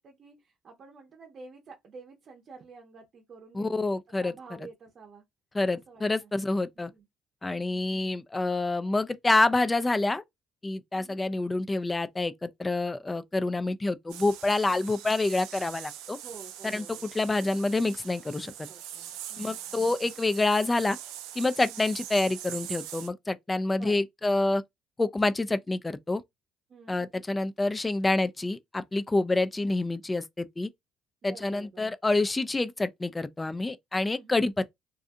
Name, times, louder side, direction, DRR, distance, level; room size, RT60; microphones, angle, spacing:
voice 1, 0.0-3.9 4.2-5.2 5.9-6.3 6.8-7.1 10.9-11.2 14.6-15.1 16.2-17.1 18.4-19.8 21.6-21.9 23.7-23.9 26.7-27.0 31.2-31.8 34.1-34.4, right 4 dB, 50° right, 0.7 m, -50 dB
voice 2, 3.5-4.3 5.5-6.9 7.4-10.2 10.6-16.2 16.6-18.5 19.4-21.0 21.4-24.6 25.0-26.2 26.9-30.7 31.2-34.7, left 2 dB, 20° left, 0.3 m, -27 dB
sound 1, 14.1-23.1, right 11 dB, 90° right, 0.4 m, -42 dB
2.5 x 2.3 x 2.6 m
supercardioid pair, 80°, 0 cm